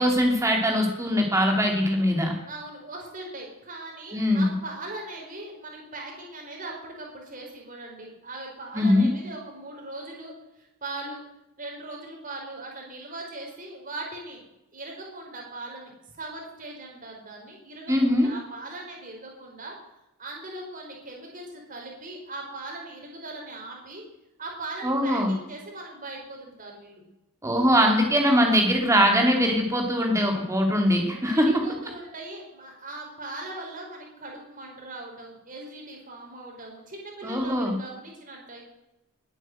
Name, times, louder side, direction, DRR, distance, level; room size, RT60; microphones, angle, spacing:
voice 1, 0.0-2.3 4.1-4.5 8.7-9.1 17.9-18.3 24.8-25.3 27.4-31.6 37.2-37.8, equal, 15° right, 2 dB, 3.0 m, -22 dB
voice 2, 2.4-11.2 11.6-14.4 14.7-15.9 16.2-19.8 20.2-24.0 24.4-27.0 31.1-38.6, right 2 dB, 40° right, 0 dB, 4.7 m, -40 dB
19.5 x 9.3 x 7.8 m, 0.92 s
head